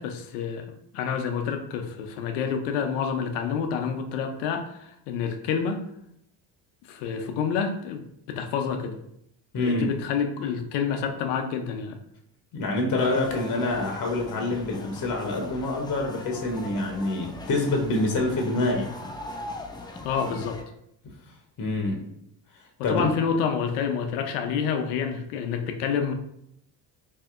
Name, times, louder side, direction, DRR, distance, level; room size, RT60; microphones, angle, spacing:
voice 1, 0.0-5.8 6.9-8.0 8.3-9.0 9.6-12.0 20.0-20.6 22.9-26.1, left 6 dB, 75° left, 6 dB, 0.7 m, -28 dB
voice 2, 9.5-9.9 12.5-18.9 21.6-22.0 22.8-23.1, left 2 dB, 40° left, 2 dB, 0.9 m, -26 dB
sound 1, 13.0-20.6, left 2 dB, 10° left, 0.3 m, -40 dB
4.1 x 2.7 x 2.4 m, 0.75 s
hypercardioid pair, 65°, 50 cm